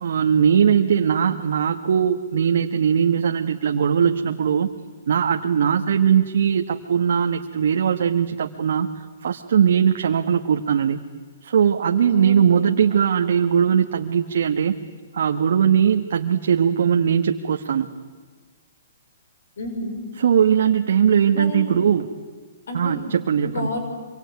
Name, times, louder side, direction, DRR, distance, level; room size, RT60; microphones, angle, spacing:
voice 1, 0.0-4.7 5.1-11.0 11.4-14.8 15.1-17.9 20.2-22.1 22.7-23.7, right 8 dB, 70° right, 4 dB, 1.4 m, -20 dB
voice 2, 19.6-20.0 21.3-21.8 22.7-23.1 23.4-23.8, left 2 dB, 75° left, 6 dB, 5.5 m, -30 dB
26.0 x 24.0 x 9.5 m, 1.5 s
hypercardioid pair, 145°, 0 cm